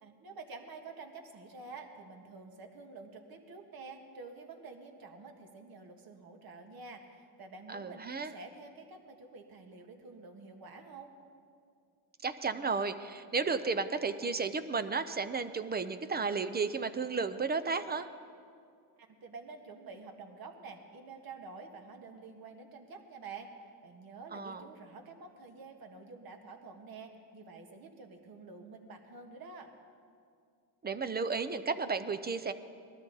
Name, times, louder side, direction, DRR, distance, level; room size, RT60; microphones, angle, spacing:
voice 1, 0.0-11.1 19.0-23.5 23.8-29.7, right 4 dB, 50° right, 4 dB, 1.6 m, -49 dB
voice 2, 7.7-8.3 12.2-18.1 24.3-24.6 30.8-32.5, right 4 dB, 20° right, 11 dB, 0.5 m, -33 dB
20.0 x 13.0 x 4.0 m, 2.3 s
cardioid pair, 115°, 47 cm